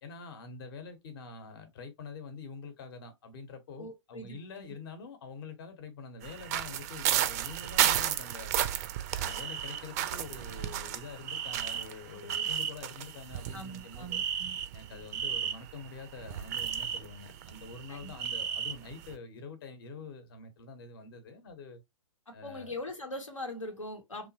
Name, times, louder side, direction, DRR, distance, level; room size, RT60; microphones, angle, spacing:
voice 1, 0.0-8.6 9.2-14.2 14.7-21.8 22.3-22.7, left 4 dB, 50° left, 0.8 m, -46 dB
voice 2, 3.8-4.7 12.1-12.5 13.5-14.6 17.9-18.1 22.3-24.3, left 1 dB, 85° left, 0.8 m, -42 dB
sound 1, 6.2-19.1, right 10 dB, 30° right, 0.4 m, -33 dB
2.9 x 2.0 x 2.8 m
figure-of-eight pair, 120°, 16 cm